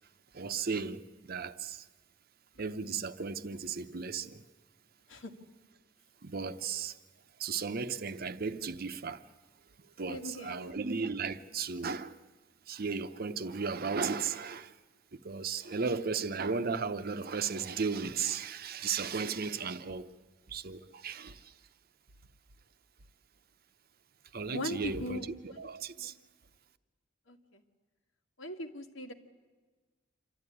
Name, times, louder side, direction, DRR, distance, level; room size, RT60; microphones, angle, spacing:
voice 1, 0.3-1.8 2.6-4.4 6.2-7.0 7.4-9.2 10.0-12.2 12.7-14.7 15.1-20.1 20.5-21.5 24.3-25.2 25.4-26.1, right 5 dB, 50° right, 0.8 m, -35 dB
voice 2, 10.1-10.7 24.5-25.6 26.0-26.1 27.3-27.6 28.4-29.1, left 1 dB, 90° left, 1.7 m, -40 dB
27.0 x 12.5 x 9.9 m
head